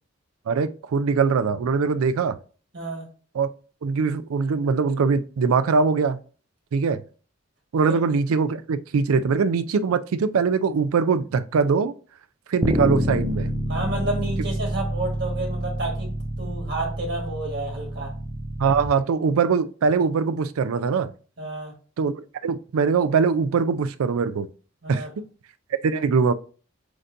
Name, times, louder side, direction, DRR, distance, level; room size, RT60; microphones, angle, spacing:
voice 1, 0.5-2.4 3.4-3.5 3.8-6.2 6.7-7.0 7.7-11.9 12.5-13.5 18.6-21.1 22.0-22.1 22.4-24.5 24.9-25.0 25.8-26.3, right 5 dB, 90° right, 0.4 m, -22 dB
voice 2, 2.7-3.1 7.8-8.0 13.7-16.1 16.4-18.1 21.4-21.7 24.8-25.1, right 2 dB, 55° right, 1.4 m, -30 dB
Bass guitar, 12.6-18.9, equal, 10° right, 0.3 m, -28 dB
7.7 x 2.7 x 2.5 m
head